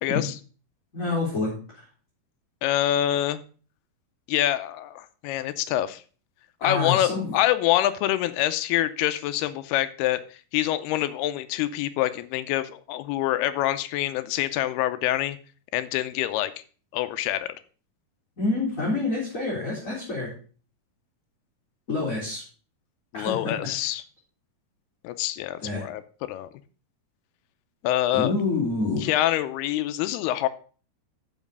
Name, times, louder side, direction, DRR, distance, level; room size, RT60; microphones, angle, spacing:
voice 1, 0.0-0.3 2.6-3.4 4.3-6.0 6.6-15.4 15.7-16.5 16.9-17.5 23.1-24.0 25.0-26.5 27.8-28.3 29.0-30.5, left 13 dB, 90° left, 12 dB, 2.7 m, -26 dB
voice 2, 0.9-1.8 6.6-7.4 18.4-20.3 21.9-22.4 23.1-23.5 25.6-25.8 28.1-29.1, left 3 dB, 20° left, -6 dB, 3.1 m, -27 dB
7.3 x 6.3 x 6.6 m, 0.40 s
omnidirectional pair, 4.5 m